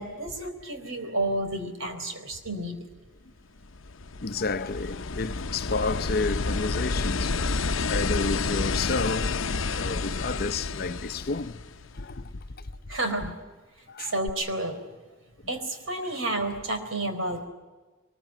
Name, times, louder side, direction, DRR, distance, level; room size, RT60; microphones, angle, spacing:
voice 1, 0.0-2.9 9.7-9.8 12.9-13.4 14.0-14.8 15.5-17.5, right 1 dB, 90° right, 4.1 m, -31 dB
sound 1, 3.6-12.1 14.3-14.4, left 3 dB, 85° left, 0.8 m, -30 dB
voice 2, 4.2-9.4 9.7-11.6 11.9-13.0 13.9-14.1, left 3 dB, 50° left, 0.7 m, -31 dB
23.5 x 21.5 x 9.0 m
head